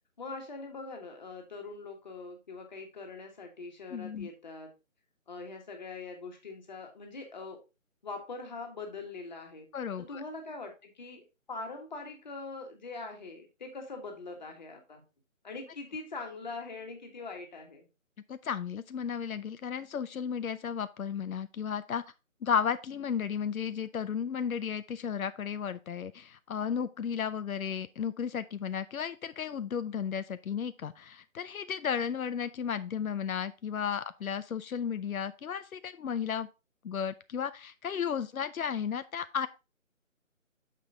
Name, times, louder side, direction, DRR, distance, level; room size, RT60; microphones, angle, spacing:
voice 1, 0.2-4.7 5.3-7.6 8.0-9.7 10.0-15.0 15.4-17.9, left 3 dB, 35° left, 1.6 m, -42 dB
voice 2, 3.9-4.3 9.7-10.2 18.3-22.0 22.4-36.5 36.8-39.5, left 7 dB, 90° left, 0.6 m, -34 dB
6.7 x 5.3 x 3.7 m
figure-of-eight pair, 165°, 41 cm